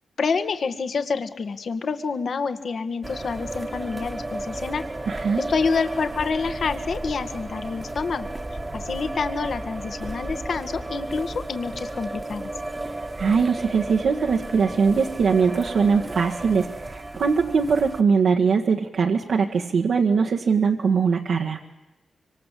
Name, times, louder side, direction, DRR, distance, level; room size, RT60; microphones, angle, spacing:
voice 1, 0.2-4.8 5.4-12.5, left 5 dB, 60° left, 9 dB, 1.9 m, -28 dB
sound 1, 3.0-18.0, right 2 dB, 20° right, 1.6 m, -33 dB
voice 2, 5.1-5.5 12.8-21.6, right 5 dB, 70° right, 0 dB, 1.8 m, -21 dB
25.5 x 25.0 x 8.5 m, 1.0 s
cardioid pair, 100°, 0 cm